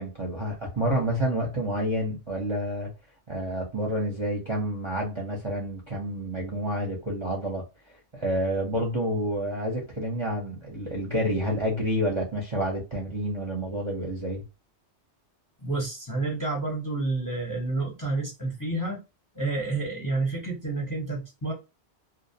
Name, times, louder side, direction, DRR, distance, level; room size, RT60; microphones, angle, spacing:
voice 1, 0.0-2.9 3.3-7.6 8.1-14.4, equal, 35° right, 0.6 m, -29 dB
voice 2, 15.6-19.0 19.3-21.5, right 3 dB, 20° left, 0.7 m, -29 dB
2.5 x 2.0 x 2.7 m
omnidirectional pair, 1.2 m